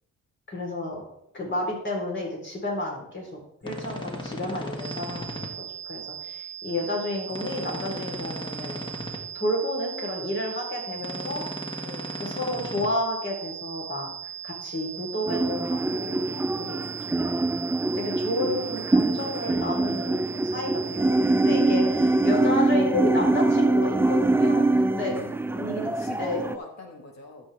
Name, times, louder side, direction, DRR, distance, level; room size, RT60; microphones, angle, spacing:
voice 1, 0.5-1.0 1.3-5.6 5.9-8.8 9.3-11.4 12.2-14.1 14.4-16.3 16.7-16.8 17.1-17.4 17.9-22.0 22.2-25.1 25.5-25.9 26.2-26.4, left 1 dB, 40° left, -1 dB, 3.9 m, -31 dB
sound 1, 3.6-5.5 7.3-9.2 11.0-12.9, left 1 dB, 15° left, 1.8 m, -36 dB
voice 2, 3.8-4.6 7.8-8.1 11.8-12.1 16.5-17.3 18.6-18.8 21.9-22.1 24.9-25.4 25.6-27.5, left 3 dB, 60° left, 2 dB, 1.8 m, -42 dB
sound 2, 4.8-22.5, right 8 dB, 25° right, 0.8 m, -38 dB
sound 3, 15.3-26.6, right 2 dB, 10° right, 0.4 m, -24 dB
12.0 x 6.2 x 3.5 m, 0.74 s
cardioid pair, 90°, 30 cm